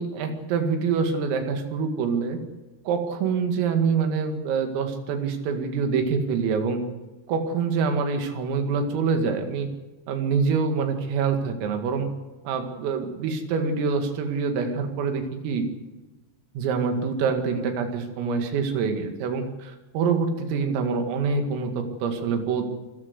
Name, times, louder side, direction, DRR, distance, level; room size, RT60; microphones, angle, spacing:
voice 1, 0.0-2.4 2.9-6.8 7.3-9.7 10.1-12.1 12.5-15.7 16.6-22.6, right 5 dB, 90° right, 6 dB, 4.8 m, -25 dB
26.5 x 15.0 x 8.3 m, 1.2 s
omnidirectional pair, 5.8 m